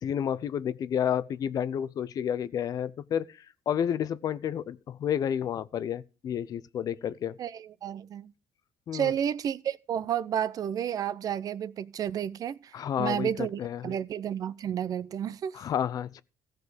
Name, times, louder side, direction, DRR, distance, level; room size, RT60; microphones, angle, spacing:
voice 1, 0.0-3.2 3.7-7.4 8.9-9.1 12.7-13.9 15.5-16.2, left 9 dB, 50° left, 0.6 m, -30 dB
voice 2, 7.4-8.3 8.9-12.6 13.0-15.6, right 9 dB, 50° right, 0.5 m, -31 dB
14.5 x 5.2 x 6.3 m
cardioid pair, 120°, 8 cm